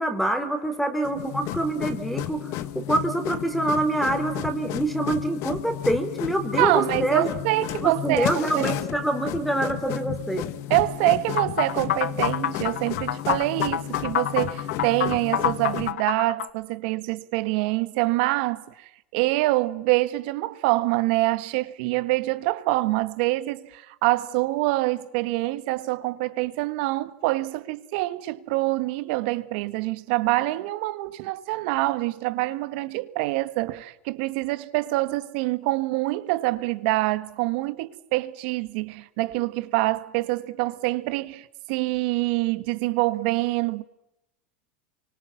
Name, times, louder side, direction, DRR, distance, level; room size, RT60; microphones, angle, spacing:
voice 1, 0.0-7.3 7.8-10.5, right 1 dB, ahead, 3.3 m, -26 dB
sound 1, 1.0-15.9, left 13 dB, 50° left, 1.4 m, -33 dB
voice 2, 6.6-8.3 8.5-8.7 10.7-43.8, right 19 dB, 60° right, 1.5 m, -25 dB
sound 2, 11.4-16.5, left 11 dB, 85° left, 1.1 m, -27 dB
29.0 x 25.0 x 7.3 m
supercardioid pair, 125°, 6 cm